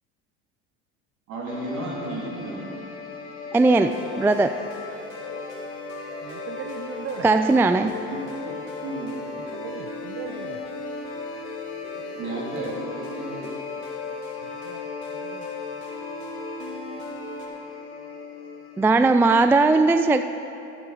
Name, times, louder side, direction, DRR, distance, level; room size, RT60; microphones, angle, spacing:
voice 1, 1.3-2.7 7.6-9.2 12.1-13.6, right 2 dB, 60° right, -3 dB, 3.2 m, -34 dB
sound 1, 1.5-19.5, left 3 dB, 90° left, 1.6 m, -39 dB
sound 2, 3.5-17.5, left 4 dB, 70° left, 2.3 m, -38 dB
voice 2, 3.5-4.5 7.2-7.9 18.8-20.3, right 3 dB, 5° right, 9 dB, 0.3 m, -18 dB
voice 3, 6.2-7.3 9.5-10.6 14.4-14.8 15.1-15.5, right 6 dB, 40° right, 3 dB, 0.9 m, -38 dB
12.0 x 11.0 x 4.9 m, 2.8 s
hypercardioid pair, 75°, 33 cm